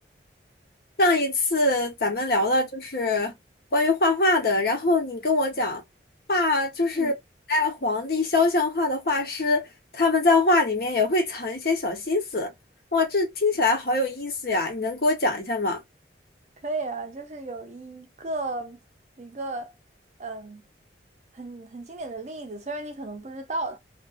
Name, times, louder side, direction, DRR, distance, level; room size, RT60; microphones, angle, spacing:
voice 1, 1.0-3.3 3.7-5.8 6.3-7.1 7.5-9.7 9.9-12.5 12.9-15.8, left 2 dB, 55° left, 0.9 m, -23 dB
voice 2, 16.6-18.8 19.2-19.7 20.2-20.6 21.3-23.8, right 2 dB, 40° right, 0.5 m, -34 dB
2.4 x 2.4 x 2.3 m
head